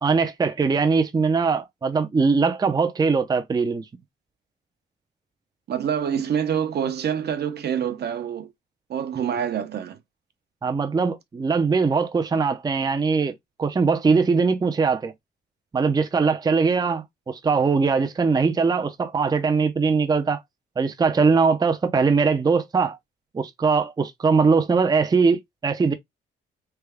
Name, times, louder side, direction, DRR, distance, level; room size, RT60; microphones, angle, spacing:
voice 1, 0.0-3.8 10.6-15.1 15.7-20.4 20.8-23.0 23.3-25.9, right 5 dB, 20° right, 0.5 m, -21 dB
voice 2, 5.7-8.5 8.9-10.0, right 8 dB, 55° right, 0.8 m, -26 dB
3.4 x 2.2 x 3.4 m
cardioid pair, 90°, 20 cm